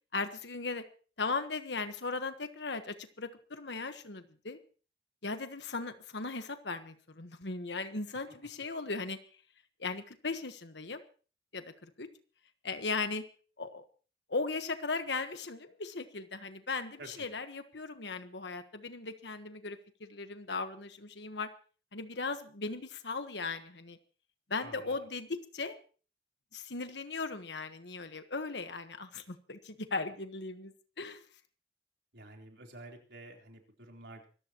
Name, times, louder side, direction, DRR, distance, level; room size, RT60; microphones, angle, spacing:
voice 1, 0.1-0.8 1.2-4.6 5.2-9.2 9.8-11.0 11.5-11.7 12.0-12.1 12.6-13.2 13.6-13.8 14.3-21.5 21.9-24.0 24.5-25.8 26.5-30.7 31.0-31.2, left 3 dB, 70° left, 8 dB, 1.3 m, -37 dB
voice 2, 24.6-25.0 32.1-34.3, right 2 dB, 75° right, 1 dB, 3.9 m, -50 dB
25.0 x 14.5 x 3.0 m, 0.39 s
head